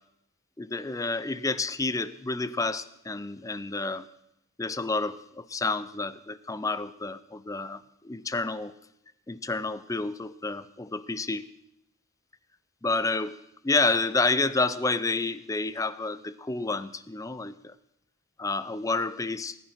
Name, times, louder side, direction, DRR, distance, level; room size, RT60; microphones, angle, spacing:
voice 1, 0.6-4.1 4.6-8.7 9.3-11.5 12.8-13.4 13.6-17.8 18.4-19.6, left 3 dB, 15° left, 15 dB, 0.4 m, -29 dB
19.5 x 10.0 x 5.9 m, 0.84 s
head